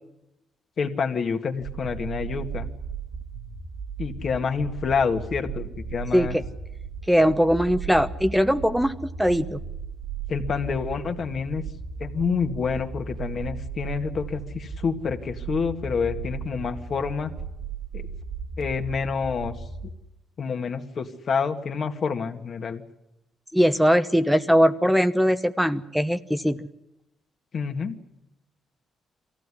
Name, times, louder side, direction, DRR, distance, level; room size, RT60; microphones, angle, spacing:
voice 1, 0.8-2.7 4.0-6.4 10.3-11.6 12.0-17.3 17.9-18.0 18.6-19.6 20.4-22.8 27.5-27.9, left 5 dB, 50° left, 5 dB, 2.0 m, -28 dB
sound 1, 1.6-20.0, right 5 dB, 60° right, 2.1 m, -36 dB
voice 2, 7.1-9.6 23.5-26.6, equal, ahead, 9 dB, 0.9 m, -21 dB
23.0 x 15.5 x 9.9 m, 0.92 s
cardioid pair, 90°, 0 cm